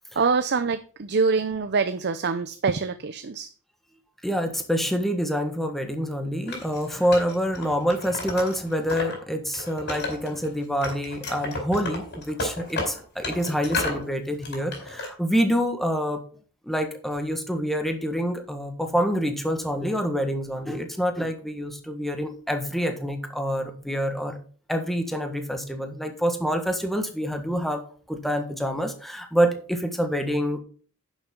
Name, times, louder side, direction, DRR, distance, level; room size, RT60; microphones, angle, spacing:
voice 1, 0.2-3.5, right 4 dB, 50° right, 11 dB, 0.6 m, -25 dB
voice 2, 4.2-16.2 16.7-24.4 24.7-27.8 28.1-30.6, equal, ahead, 5 dB, 1.4 m, -26 dB
Wood, 6.5-9.2 9.5-10.5 10.8-14.0 14.4-15.1, left 2 dB, 50° left, 4.6 m, -32 dB
10.5 x 7.2 x 3.8 m, 0.42 s
head